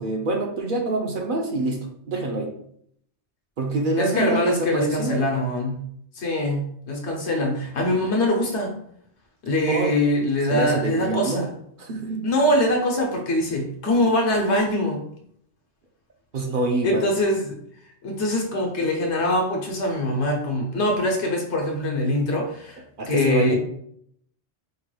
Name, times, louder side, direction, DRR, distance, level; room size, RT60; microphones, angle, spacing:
voice 1, 0.0-2.5 3.6-5.3 9.7-10.0 10.5-11.5 11.8-12.3 16.3-17.2 23.0-23.5, right 2 dB, 60° right, 2 dB, 0.7 m, -25 dB
voice 2, 4.0-5.8 6.1-8.7 9.4-11.5 12.2-15.0 16.8-17.5 18.0-22.8 23.1-23.6, left 1 dB, 80° left, 2 dB, 1.2 m, -23 dB
4.8 x 3.2 x 2.2 m, 0.68 s
omnidirectional pair, 1.1 m